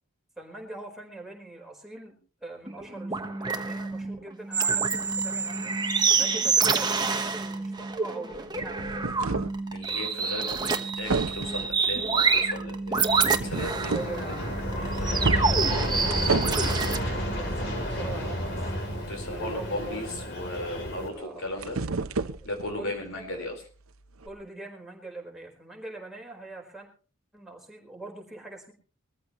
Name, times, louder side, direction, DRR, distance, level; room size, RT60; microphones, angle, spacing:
voice 1, 0.4-5.7 6.2-9.1 10.5-10.7 13.5-18.7 19.3-20.1 21.1-21.6 22.8-23.5 24.2-26.9 27.3-28.7, right 2 dB, ahead, -1 dB, 4.4 m, -43 dB
sound 1, 2.7-17.0, right 5 dB, 20° right, 1.2 m, -27 dB
sound 2, 8.3-9.6 10.5-10.7 11.1-11.7 13.3-14.2 14.6-14.8 15.2-16.8 21.2-22.8 24.2-24.3, right 4 dB, 80° right, 0.8 m, -31 dB
voice 2, 9.7-13.9 14.3-14.4 18.9-21.8 22.4-23.7, left 1 dB, 75° left, 3 dB, 4.4 m, -36 dB
Aircraft, 13.1-21.1, equal, 60° left, 3.7 m, -31 dB
22.5 x 14.5 x 3.1 m, 0.38 s
head